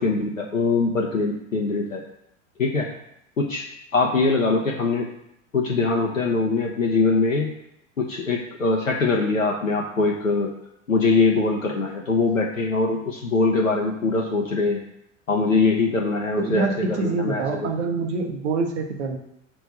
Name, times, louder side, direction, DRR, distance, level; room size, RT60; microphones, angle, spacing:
voice 1, 0.0-2.0 2.6-2.9 3.4-3.6 3.9-5.1 5.5-7.5 8.0-10.5 10.9-14.8 15.3-17.6, left 3 dB, 80° left, 0 dB, 1.0 m, -22 dB
voice 2, 16.4-19.2, right 4 dB, 60° right, 4 dB, 1.3 m, -26 dB
6.3 x 4.5 x 5.4 m, 0.78 s
figure-of-eight pair, 80°, 39 cm